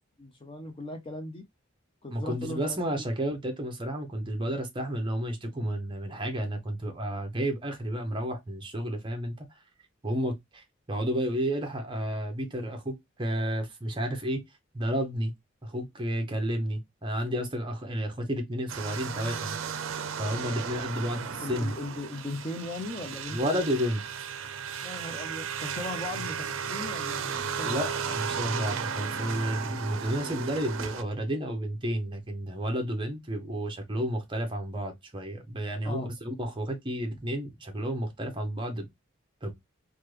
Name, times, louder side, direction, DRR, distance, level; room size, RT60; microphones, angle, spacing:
voice 1, 0.2-1.4 2.0-3.1 5.4-5.5 21.4-23.7 24.8-27.9 35.8-36.1, left 2 dB, 25° left, 0.5 m, -38 dB
voice 2, 2.1-9.5 10.0-14.4 14.7-15.3 15.6-19.6 20.2-21.7 23.3-24.3 27.7-38.9 39.4-39.5, equal, 25° right, 0.8 m, -31 dB
sound 1, 18.7-31.0, right 7 dB, 75° right, 0.5 m, -35 dB
3.2 x 2.2 x 3.2 m
head